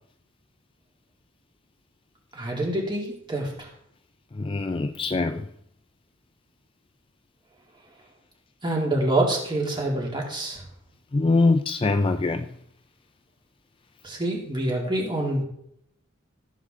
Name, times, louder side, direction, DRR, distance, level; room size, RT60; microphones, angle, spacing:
voice 1, 2.3-3.7 8.6-10.6 14.0-15.4, right 1 dB, 20° right, -1 dB, 2.9 m, -26 dB
voice 2, 4.4-5.4 11.1-12.5 14.8-14.9, left 3 dB, 25° left, 8 dB, 0.4 m, -23 dB
14.5 x 7.5 x 3.8 m, 0.71 s
head